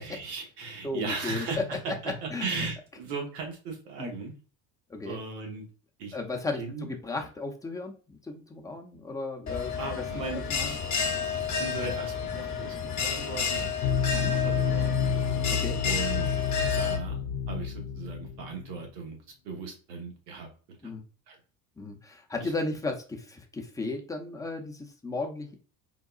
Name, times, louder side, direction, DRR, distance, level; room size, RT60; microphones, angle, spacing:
voice 1, 0.0-4.3 5.0-5.6 6.0-6.2 6.5-6.9 9.8-10.7 11.6-13.8 14.1-15.1 15.8-16.3 16.7-17.2 17.5-19.2 19.4-20.5 21.3-21.4 22.4-22.5, right 4 dB, 80° right, 2 dB, 1.2 m, -37 dB
voice 2, 0.8-1.6 2.3-2.6 4.0-4.1 4.9-5.2 6.1-9.8 10.5-10.8 14.1-14.3 15.4-15.8 20.8-21.0 21.8-25.5, left 3 dB, 5° left, 2 dB, 0.6 m, -35 dB
Bell, 9.5-17.0, left 6 dB, 35° left, 0.9 m, -31 dB
sound 1, 13.8-18.9, left 7 dB, 65° left, 0.6 m, -29 dB
3.9 x 2.2 x 2.4 m, 0.38 s
hypercardioid pair, 75°, 47 cm